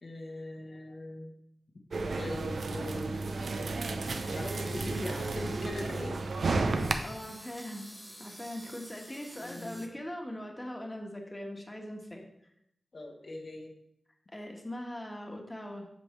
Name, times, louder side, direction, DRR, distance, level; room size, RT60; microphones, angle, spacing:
voice 1, 0.0-1.3 2.2-3.4 4.3-6.2 9.4-9.8 12.9-13.7, left 2 dB, 55° left, 1 dB, 1.0 m, -41 dB
sound 1, 1.9-6.9, right 3 dB, 80° right, 0.5 m, -32 dB
sound 2, 4.0-9.9, equal, 5° right, 1.0 m, -51 dB
voice 2, 7.0-7.9 8.2-12.2 14.3-15.9, left 1 dB, 15° left, 1 dB, 1.2 m, -41 dB
8.0 x 5.3 x 3.2 m, 0.74 s
wide cardioid pair, 70°, 0 cm